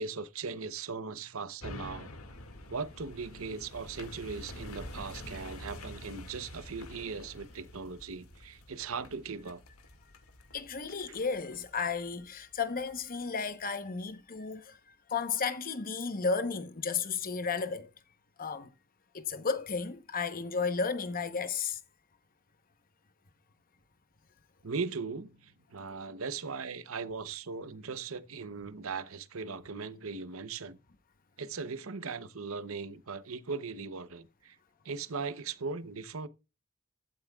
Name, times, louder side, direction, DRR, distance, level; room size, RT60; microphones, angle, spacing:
voice 1, 0.0-2.2 2.7-9.6 24.6-30.8 31.4-34.6 34.8-36.3, right 4 dB, 70° right, 0.8 m, -39 dB
sound 1, 1.6-13.0 13.5-13.6, left 1 dB, 85° left, 2.1 m, -48 dB
voice 2, 10.5-17.9 18.4-18.7 19.1-21.8, left 5 dB, 40° left, 1.0 m, -33 dB
15.0 x 12.5 x 2.4 m
head